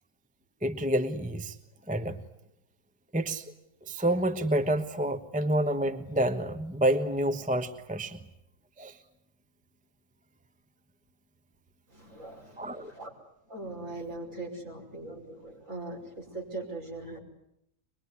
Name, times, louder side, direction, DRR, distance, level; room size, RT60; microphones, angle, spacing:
voice 1, 0.6-1.5 1.9-2.2 3.1-3.4 3.9-8.2 8.8-9.0 12.6-12.9, right 1 dB, 5° right, 1.0 m, -28 dB
voice 2, 11.9-13.1 13.5-17.2, right 2 dB, 50° right, 6.3 m, -40 dB
24.0 x 22.0 x 9.7 m
omnidirectional pair, 1.7 m